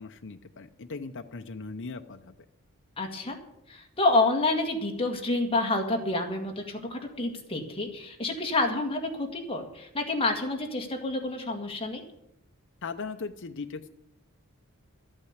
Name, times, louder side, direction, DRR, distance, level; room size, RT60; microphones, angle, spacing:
voice 1, 0.0-2.3 12.8-13.9, left 4 dB, 55° left, 6 dB, 0.7 m, -38 dB
voice 2, 3.0-3.4 3.7-12.0, left 2 dB, 25° left, 4 dB, 1.9 m, -28 dB
13.5 x 8.9 x 8.1 m, 0.80 s
head